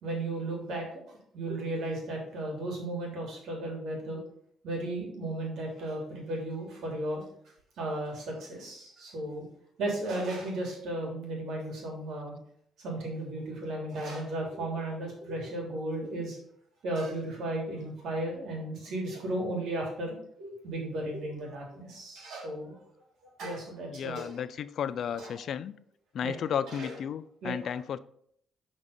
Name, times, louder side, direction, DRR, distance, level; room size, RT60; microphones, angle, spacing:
voice 1, 0.0-4.2 4.6-7.2 7.8-9.4 9.8-12.3 12.8-16.4 16.8-22.8 23.4-24.4 25.1-25.4 26.2-26.4 26.7-27.0 27.4-27.6, right 1 dB, 75° right, 0 dB, 2.7 m, -35 dB
voice 2, 23.9-25.7 26.1-28.0, left 8 dB, 65° left, 15 dB, 0.4 m, -33 dB
6.1 x 4.2 x 5.0 m, 0.66 s
cardioid pair, 90°, 0 cm